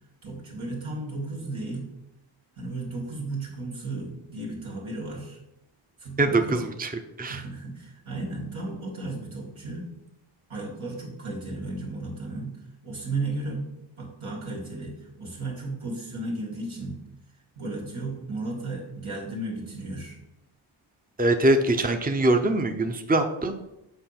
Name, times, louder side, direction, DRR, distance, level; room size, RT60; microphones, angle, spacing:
voice 1, 0.2-1.9 2.6-5.4 6.0-6.6 7.3-9.9 10.5-12.6 12.8-13.7 14.0-17.0 17.6-20.2, right 2 dB, 80° right, -2 dB, 2.4 m, -34 dB
voice 2, 6.2-7.4 21.2-23.6, right 2 dB, 20° right, 6 dB, 0.7 m, -23 dB
6.8 x 4.7 x 5.9 m, 0.88 s
cardioid pair, 45°, 49 cm